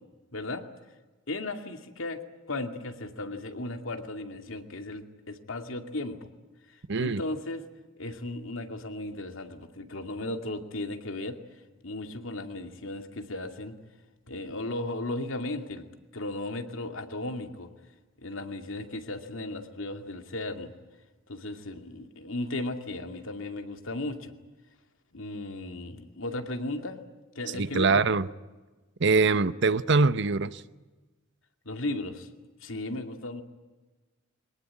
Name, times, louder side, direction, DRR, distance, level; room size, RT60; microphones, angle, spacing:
voice 1, 0.3-0.6 1.3-2.2 2.5-6.2 6.7-7.6 8.0-11.4 11.8-13.7 14.3-15.9 16.1-17.7 18.2-20.7 21.3-24.3 25.1-27.0 27.3-28.0 31.6-32.3 32.6-33.4, left 2 dB, 75° left, 6 dB, 2.4 m, -35 dB
voice 2, 6.9-7.2 27.6-28.3 29.0-30.6, right 4 dB, 60° right, 14 dB, 0.9 m, -23 dB
23.5 x 19.5 x 9.9 m, 1.2 s
head